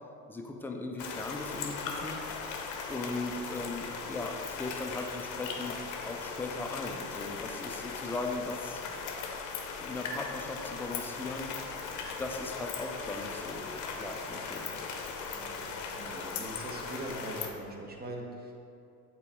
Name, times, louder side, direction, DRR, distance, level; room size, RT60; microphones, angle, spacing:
voice 1, 0.3-1.8 2.0-2.2 2.9-5.8 6.0-8.8 9.8-11.5 12.2-13.7 14.0-14.8, left 2 dB, 5° left, 2 dB, 0.3 m, -38 dB
sound 1, 1.0-17.5, left 5 dB, 40° left, 0.9 m, -38 dB
voice 2, 15.3-18.5, right 2 dB, 20° right, 1 dB, 1.1 m, -42 dB
8.1 x 4.2 x 3.6 m, 2.6 s
figure-of-eight pair, 70°, 45 cm